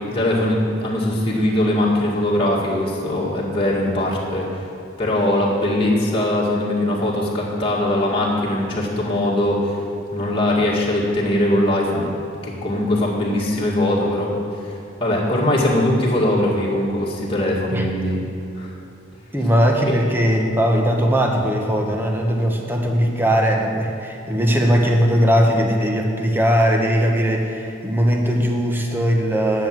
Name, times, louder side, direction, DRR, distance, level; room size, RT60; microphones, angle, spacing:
voice 1, 0.1-4.7 5.0-9.8 10.1-12.1 12.4-18.3 18.6-18.7 19.8-19.9, left 1 dB, 25° left, -5 dB, 2.1 m, -21 dB
voice 2, 19.3-29.7, equal, 10° right, 1 dB, 1.2 m, -19 dB
10.5 x 7.6 x 7.6 m, 2.9 s
head